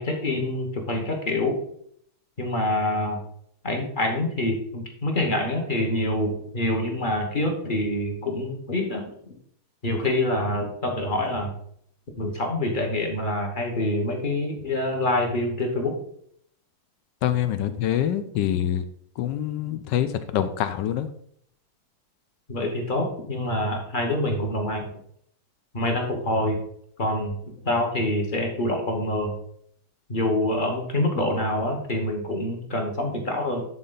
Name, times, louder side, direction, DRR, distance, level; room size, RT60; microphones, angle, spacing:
voice 1, 0.0-1.6 2.4-3.3 3.6-9.0 9.8-11.5 12.2-15.9 22.5-24.9 25.7-26.6 27.0-29.4 30.1-33.7, left 1 dB, 30° left, 2 dB, 1.0 m, -26 dB
voice 2, 17.2-18.8 19.2-21.1, left 10 dB, 75° left, 11 dB, 1.0 m, -25 dB
11.0 x 4.1 x 3.9 m, 0.66 s
omnidirectional pair, 2.3 m